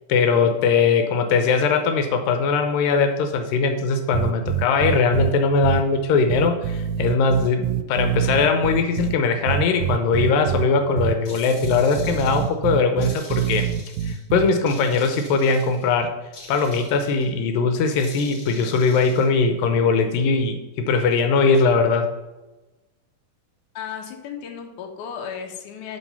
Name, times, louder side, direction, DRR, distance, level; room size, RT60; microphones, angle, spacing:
voice 1, 0.1-13.7 14.0-16.1 16.5-22.1, left 4 dB, 85° left, 6 dB, 2.5 m, -20 dB
sound 1, 4.1-5.3 5.6-5.8 6.3-9.1 9.5-10.6 11.0-11.1 11.6-14.5, right 10 dB, 90° right, 2.3 m, -25 dB
sound 2, 11.3-12.6 13.0-14.2 14.7-15.9 16.3-17.3 17.9-19.3, left 3 dB, 40° left, 2.0 m, -44 dB
voice 2, 23.7-26.0, left 7 dB, 70° left, 3 dB, 2.3 m, -34 dB
10.5 x 3.9 x 5.6 m, 1.1 s
omnidirectional pair, 3.9 m